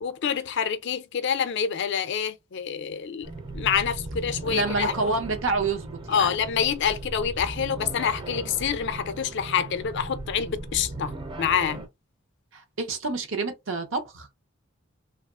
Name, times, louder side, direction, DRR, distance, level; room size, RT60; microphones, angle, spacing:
voice 1, 0.0-5.1 6.1-11.1 11.4-11.8, left 8 dB, 60° left, 0.4 m, -27 dB
sound 1, 3.2-11.9, right 2 dB, 25° right, 0.5 m, -37 dB
voice 2, 4.4-6.3 12.5-14.3, right 3 dB, 70° right, 0.7 m, -28 dB
3.0 x 2.4 x 2.4 m
head